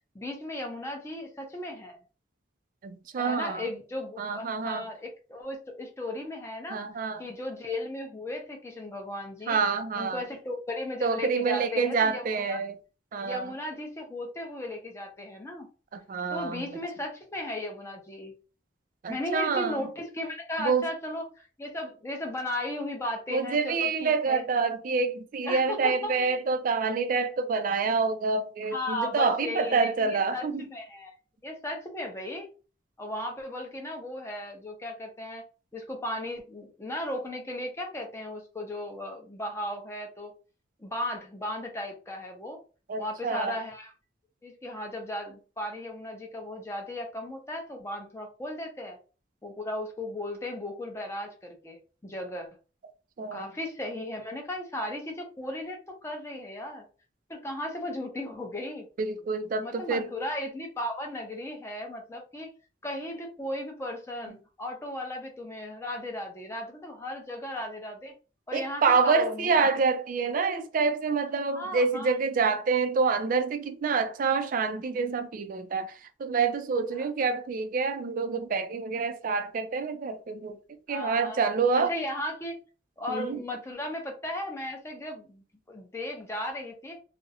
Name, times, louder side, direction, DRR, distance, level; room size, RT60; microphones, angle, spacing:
voice 1, 0.1-2.0 3.2-6.8 7.2-9.6 10.0-12.6 13.2-15.7 16.3-18.3 19.1-24.4 25.4-26.3 28.7-31.2 31.4-32.5 33.0-35.4 35.7-40.3 40.8-42.6 43.0-43.9 44.4-49.0 49.4-52.5 53.3-56.8 57.3-58.9 59.6-62.5 62.8-68.1 68.5-69.7 71.6-72.1 76.9-77.1 80.9-81.4 81.7-82.6 83.0-87.0, left 1 dB, 15° left, 0.6 m, -36 dB
voice 2, 2.8-3.6 4.2-4.8 6.7-7.2 9.5-10.2 11.0-12.8 13.1-13.5 15.9-16.7 19.0-19.9 20.6-20.9 23.3-30.6 42.9-43.6 53.2-53.5 59.0-60.1 68.5-80.6 80.9-81.9 83.1-83.4, right 4 dB, 45° right, 0.3 m, -27 dB
2.4 x 2.0 x 2.7 m
head